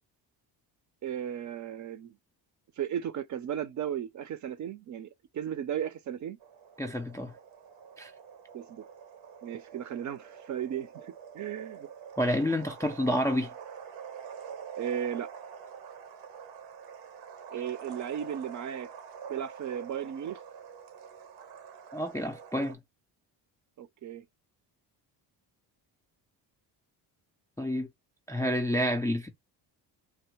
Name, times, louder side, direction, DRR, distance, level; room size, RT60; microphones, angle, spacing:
voice 1, 1.0-2.2 2.8-6.4 8.5-8.9 9.4-11.9 14.8-15.3 17.5-18.9 19.3-20.4 23.8-24.3, right 9 dB, 45° right, 0.6 m, -35 dB
sound 1, 6.4-22.7, right 7 dB, 90° right, 1.1 m, -46 dB
voice 2, 6.8-7.3 8.0-8.1 12.2-13.5 21.9-22.8 27.6-27.9 28.3-29.3, equal, 10° left, 0.3 m, -29 dB
3.4 x 2.1 x 3.0 m
cardioid pair, 125°, 42 cm